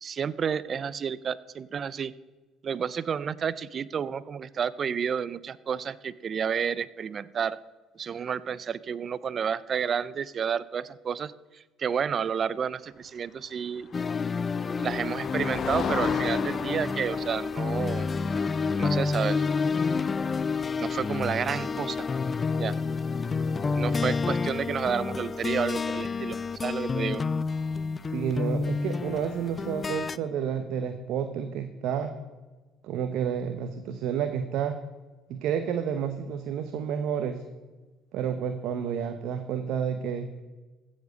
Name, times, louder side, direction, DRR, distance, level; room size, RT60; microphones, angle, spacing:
voice 1, 0.0-2.1 2.6-7.6 8.0-11.3 11.8-13.9 14.8-18.1 18.8-19.4 20.8-22.1 22.6-22.8 23.7-27.2, right 7 dB, 45° right, 19 dB, 0.5 m, -30 dB
Motor vehicle (road), 13.8-21.5, left 6 dB, 55° left, 1.1 m, -38 dB
sound 1, 13.9-30.2, left 4 dB, 30° left, 0.4 m, -29 dB
voice 2, 28.1-32.1 32.8-34.8 35.3-37.4 38.1-40.3, right 8 dB, 70° right, 8 dB, 0.8 m, -30 dB
15.0 x 7.3 x 5.2 m, 1.2 s
supercardioid pair, 80°, 0 cm